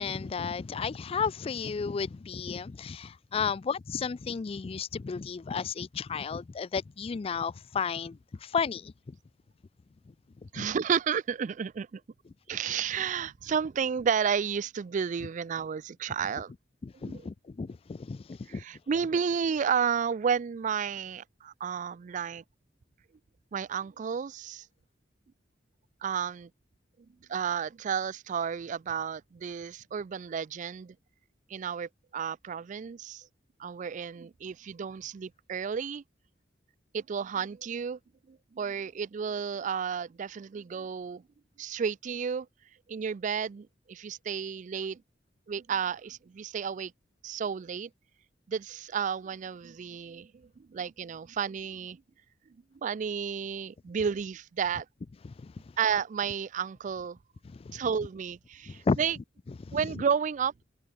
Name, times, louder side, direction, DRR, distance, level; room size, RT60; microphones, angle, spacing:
voice 1, 0.0-9.2 10.4-10.7 16.8-18.6 55.2-55.5 57.4-57.8 58.7-59.0 59.5-60.0, left 5 dB, 30° left, 0.3 m, -33 dB
voice 2, 10.5-12.0 12.5-16.5 17.1-17.2 18.5-22.4 23.5-24.6 26.0-26.5 27.3-30.9 31.5-33.2 33.6-36.0 36.9-38.0 38.3-41.2 41.6-42.5 42.9-45.0 45.5-46.9 47.2-47.9 48.5-50.3 50.7-52.0 52.8-54.9 55.8-57.2 57.7-59.2 59.7-60.5, right 7 dB, 40° right, 0.3 m, -32 dB
head